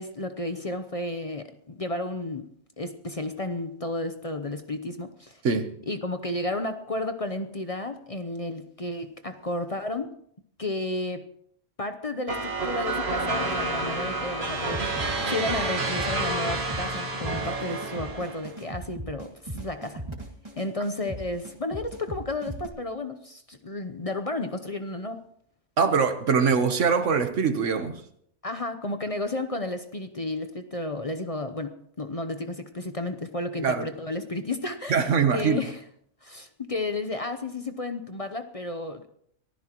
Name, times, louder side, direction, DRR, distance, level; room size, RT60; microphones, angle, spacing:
voice 1, 0.0-2.5 2.8-5.4 5.9-10.1 10.6-11.3 11.8-20.0 20.6-25.2 28.4-35.8 36.2-39.1, left 2 dB, 35° left, 0.8 m, -32 dB
sound 1, 12.3-18.5, right 2 dB, 55° right, 2.0 m, -29 dB
sound 2, 14.7-22.7, right 2 dB, 20° right, 2.3 m, -38 dB
voice 2, 25.8-28.0 33.6-33.8 34.9-35.7, right 5 dB, 75° right, 1.4 m, -23 dB
23.5 x 15.0 x 3.0 m
omnidirectional pair, 1.3 m